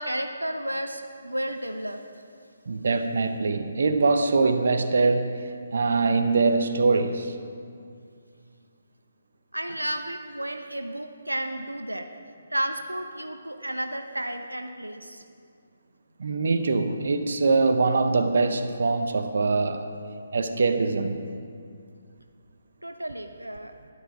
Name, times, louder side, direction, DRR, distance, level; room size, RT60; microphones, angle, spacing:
voice 1, 0.0-2.0 9.5-12.1 12.5-15.2 22.8-23.7, right 1 dB, 85° right, 0.7 m, -32 dB
voice 2, 2.7-5.4 5.7-7.3 16.2-19.9 20.3-21.3, right 3 dB, 55° right, 0.8 m, -23 dB
12.5 x 10.5 x 4.8 m
figure-of-eight pair, 140°, 0 cm